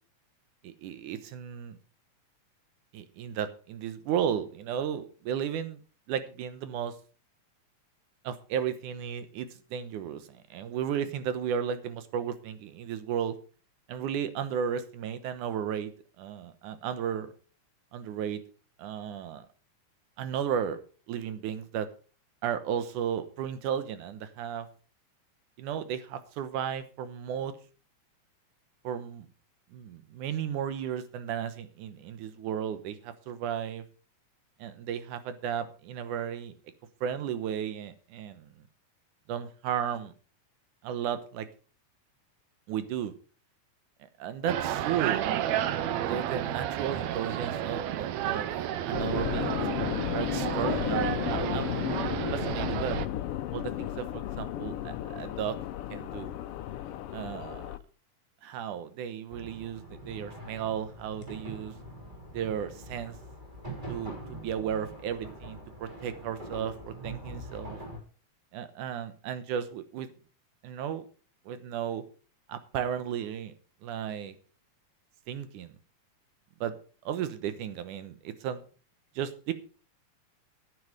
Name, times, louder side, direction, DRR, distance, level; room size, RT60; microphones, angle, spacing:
voice 1, 0.6-1.8 2.9-5.8 6.1-7.0 8.2-13.4 13.9-15.9 16.2-17.3 17.9-18.4 18.8-19.5 20.2-20.8 21.1-21.9 22.4-24.7 25.6-27.6 28.8-29.3 29.7-33.8 34.6-36.5 37.0-38.5 39.3-40.1 40.8-41.5 42.7-43.1 44.2-45.2 46.0-48.5 48.9-49.6 50.1-51.8 52.3-53.0 53.5-55.6 55.9-56.3 57.1-57.7 58.4-61.7 62.3-63.2 63.9-67.8 68.5-70.1 70.6-71.1 71.5-72.0 72.5-73.5 73.8-74.4 75.3-75.8 76.6-76.8 77.0-78.6 79.2-79.5, right 8 dB, 90° right, 11 dB, 2.6 m, -34 dB
sound 1, 44.5-53.1, right 11 dB, 75° right, 1.9 m, -31 dB
sound 2, 48.9-57.8, left 12 dB, 85° left, 1.3 m, -33 dB
sound 3, 59.3-68.0, right 1 dB, 15° right, 3.2 m, -44 dB
9.7 x 9.7 x 5.0 m, 0.39 s
omnidirectional pair, 3.4 m